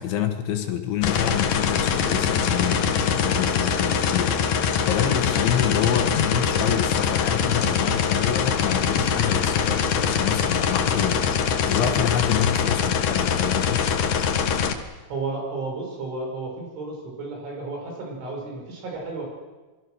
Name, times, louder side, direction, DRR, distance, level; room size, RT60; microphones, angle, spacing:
voice 1, 0.0-4.4 4.8-11.3 11.7-13.9, left 9 dB, 70° left, 6 dB, 3.6 m, -27 dB
sound 1, 1.0-14.7, left 7 dB, 90° left, 1.7 m, -23 dB
voice 2, 15.1-19.3, right 3 dB, 65° right, 0 dB, 8.2 m, -32 dB
27.0 x 22.5 x 6.4 m, 1.3 s
omnidirectional pair, 5.8 m